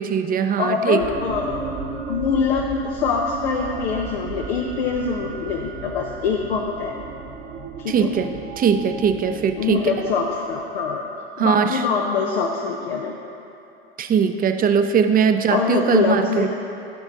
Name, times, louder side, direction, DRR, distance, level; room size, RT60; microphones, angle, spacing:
voice 1, 0.0-1.0 7.9-9.9 11.4-11.8 14.0-16.5, right 7 dB, 25° right, 8 dB, 0.7 m, -20 dB
voice 2, 0.6-1.6 2.1-6.9 7.8-8.1 9.6-11.0 11.4-13.1 15.5-16.5, left 5 dB, 75° left, 0 dB, 0.9 m, -24 dB
musicalwinds new, 1.0-10.8, right 5 dB, 65° right, 1.5 m, -34 dB
16.0 x 5.9 x 4.0 m, 2.9 s
hypercardioid pair, 90°, 32 cm